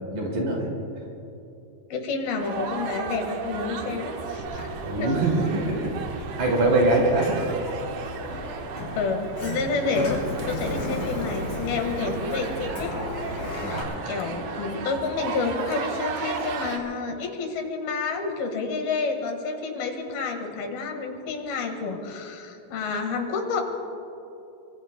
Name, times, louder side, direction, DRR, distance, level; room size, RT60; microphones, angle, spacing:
voice 1, 0.1-0.7 4.9-7.5 9.5-9.6 13.6-14.0, right 2 dB, 55° right, -1 dB, 3.6 m, -24 dB
voice 2, 1.9-4.7 5.0-5.3 9.0-10.2 10.5-12.9 13.5-23.6, left 4 dB, 75° left, 3 dB, 3.5 m, -29 dB
sound 1, 2.4-16.8, right 5 dB, 85° right, 3.3 m, -34 dB
Sliding door, 4.4-13.8, left 1 dB, 50° left, 5.2 m, -35 dB
25.0 x 24.5 x 2.2 m, 3.0 s
omnidirectional pair, 4.4 m